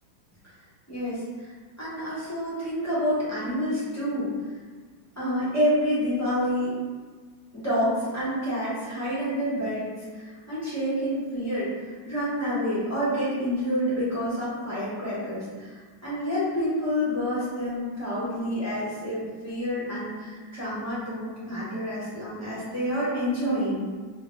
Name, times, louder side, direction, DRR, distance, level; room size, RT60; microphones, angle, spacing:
voice 1, 0.9-4.3 5.2-6.8 7.5-23.9, equal, 25° left, -12 dB, 0.3 m, -28 dB
3.5 x 2.2 x 3.1 m, 1.5 s
omnidirectional pair, 2.2 m